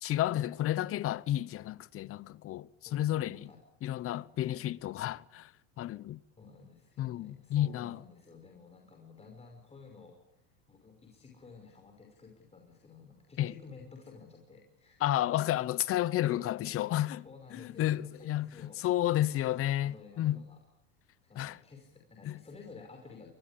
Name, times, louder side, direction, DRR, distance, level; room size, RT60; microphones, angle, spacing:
voice 1, 0.0-3.5 3.8-5.5 5.8-6.2 7.0-8.0 13.4-13.5 15.0-17.2 17.5-20.4 21.4-21.6 22.2-22.4, left 13 dB, 35° left, 1.0 m, -31 dB
voice 2, 2.8-3.6 4.4-4.7 6.4-15.1 17.2-18.8 19.3-20.6 21.2-23.3, left 4 dB, 15° left, 5.7 m, -53 dB
24.5 x 20.5 x 8.6 m
supercardioid pair, 115°, 38 cm